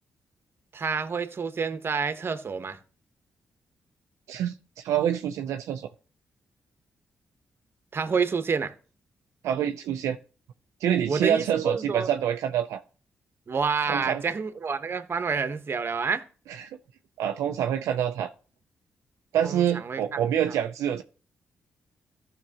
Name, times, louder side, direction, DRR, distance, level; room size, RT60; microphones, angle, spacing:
voice 1, 0.7-2.8 7.9-8.7 11.1-12.1 13.5-16.2 19.4-20.0, right 5 dB, 50° right, 1.1 m, -28 dB
voice 2, 4.3-5.9 9.4-10.2 10.8-12.8 13.9-14.2 16.5-16.8 17.2-18.3 19.3-21.0, right 9 dB, 80° right, 0.5 m, -26 dB
14.5 x 5.8 x 2.9 m
supercardioid pair, 50°, 5 cm